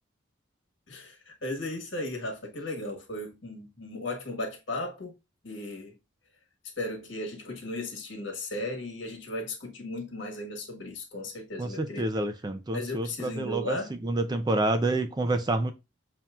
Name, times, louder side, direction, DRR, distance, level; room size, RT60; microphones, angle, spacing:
voice 1, 0.9-5.1 5.4-5.9 6.8-12.1 12.7-13.9, left 2 dB, 65° left, 1.5 m, -36 dB
voice 2, 11.6-15.7, right 2 dB, 20° right, 0.4 m, -28 dB
7.1 x 2.9 x 2.4 m
head